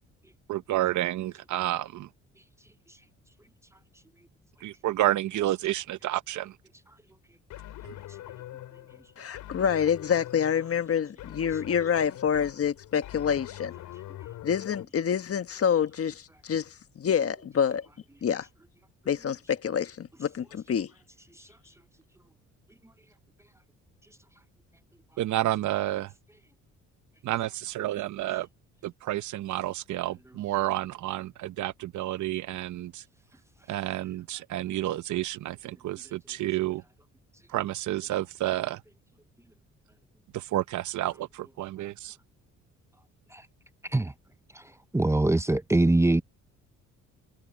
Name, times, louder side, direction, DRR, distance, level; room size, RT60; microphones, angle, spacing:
voice 1, 0.5-2.1 4.6-6.6 25.2-26.1 27.2-28.5 28.8-33.0 33.7-36.8 37.5-38.8 40.3-42.2, right 14 dB, 75° right, 0.8 m, -30 dB
sound 1, 7.5-14.8, left 14 dB, 85° left, 6.5 m, -43 dB
voice 2, 9.2-13.7 14.4-17.9 18.2-18.5 19.1-20.9, left 8 dB, 50° left, 1.4 m, -27 dB
voice 3, 44.9-46.2, right 2 dB, 10° right, 0.6 m, -23 dB
cardioid pair, 90°, 30 cm